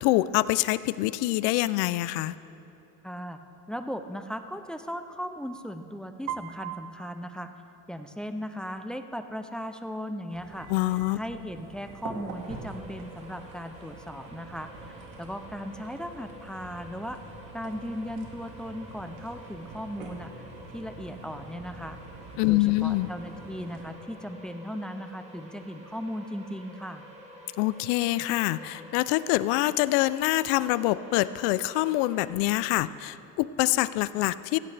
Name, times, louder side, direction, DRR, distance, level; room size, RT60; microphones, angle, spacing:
voice 1, 0.0-2.4 10.7-11.2 22.4-23.1 27.6-34.6, left 17 dB, 85° left, 16 dB, 0.5 m, -25 dB
voice 2, 3.0-3.4 3.7-7.5 7.9-10.7 11.1-17.2 17.5-20.3 20.7-22.0 22.4-27.0, equal, ahead, 8 dB, 0.3 m, -37 dB
Piano, 6.3-8.3, right 11 dB, 85° right, 0.7 m, -40 dB
sound 1, 10.3-23.9, right 3 dB, 55° right, 2.0 m, -46 dB
sound 2, 12.3-32.3, equal, 15° right, 2.1 m, -49 dB
16.5 x 16.0 x 3.3 m, 2.7 s
cardioid pair, 140°, 38 cm